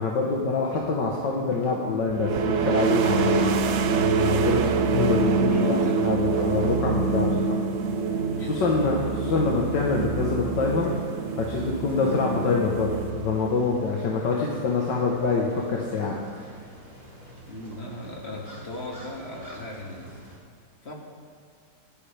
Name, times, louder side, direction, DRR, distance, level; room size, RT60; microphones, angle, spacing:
voice 1, 0.0-3.5 4.0-7.6 8.5-10.9 11.4-16.5, left 4 dB, 75° left, -2 dB, 1.9 m, -26 dB
sound 1, 2.1-13.6, right 5 dB, 65° right, 0.7 m, -25 dB
sound 2, 2.9-20.4, right 1 dB, 20° right, 2.7 m, -47 dB
voice 2, 5.6-6.0 8.3-8.8 17.5-20.2 20.8-20.9, left 2 dB, 35° left, -2 dB, 2.5 m, -37 dB
26.0 x 10.0 x 3.5 m, 2.3 s
omnidirectional pair, 1.9 m